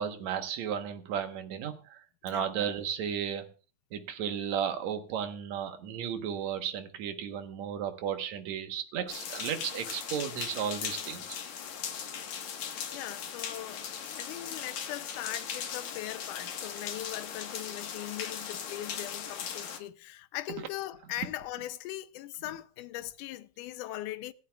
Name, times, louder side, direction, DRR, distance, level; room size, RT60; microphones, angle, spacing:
voice 1, 0.0-3.5 3.9-11.4, right 8 dB, 60° right, 2.2 m, -34 dB
sound 1, 9.1-19.8, left 7 dB, 60° left, 2.6 m, -39 dB
voice 2, 12.9-13.8 14.1-24.3, left 15 dB, 75° left, 2.0 m, -40 dB
26.0 x 9.1 x 2.4 m
omnidirectional pair, 4.1 m